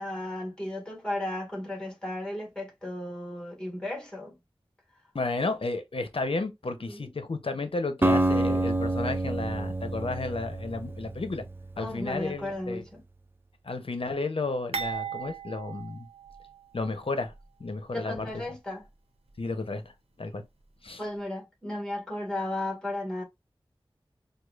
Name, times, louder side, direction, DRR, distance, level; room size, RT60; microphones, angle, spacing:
voice 1, 0.0-4.4 6.9-7.1 11.8-13.0 17.9-18.9 21.0-23.2, left 1 dB, 10° left, 1.7 m, -35 dB
voice 2, 5.1-11.4 11.8-12.8 13.6-16.1 16.7-17.3 17.6-18.4 19.4-20.4 20.8-21.0, left 3 dB, 65° left, 0.7 m, -32 dB
Acoustic guitar, 8.0-12.1, right 2 dB, 20° right, 0.4 m, -28 dB
sound 1, 14.7-16.9 17.2-17.4 18.3-18.4, right 6 dB, 85° right, 0.8 m, -37 dB
4.7 x 2.4 x 2.4 m
wide cardioid pair, 40°, 10 cm